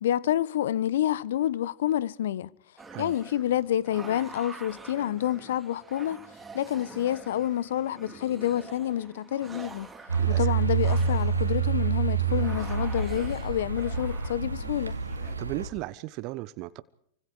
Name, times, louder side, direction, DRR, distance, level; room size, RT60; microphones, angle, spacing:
voice 1, 0.0-2.5 3.0-6.2 6.5-9.9 10.3-15.0, left 11 dB, 65° left, 1.0 m, -28 dB
sound 1, 2.8-15.3, right 4 dB, 10° right, 3.7 m, -46 dB
sound 2, 10.1-15.7, right 6 dB, 90° right, 2.3 m, -27 dB
voice 2, 15.4-16.8, right 18 dB, 45° right, 1.1 m, -36 dB
28.0 x 25.5 x 4.9 m
figure-of-eight pair, 95°, 0 cm